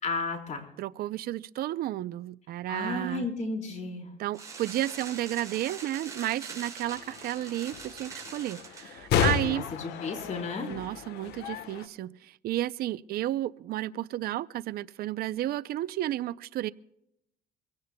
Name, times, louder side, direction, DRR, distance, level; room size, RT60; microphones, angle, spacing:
voice 1, 0.0-0.7 2.7-4.1 9.4-10.7, left 3 dB, 45° left, 2 dB, 3.9 m, -33 dB
voice 2, 0.8-3.3 4.2-9.7 10.7-16.7, right 14 dB, 65° right, 18 dB, 0.5 m, -32 dB
sound 1, 4.3-8.9, right 4 dB, 20° right, 5.4 m, -43 dB
sound 2, 6.8-11.9, left 8 dB, 80° left, 1.2 m, -33 dB
24.5 x 17.0 x 2.2 m, 0.79 s
cardioid pair, 110°, 17 cm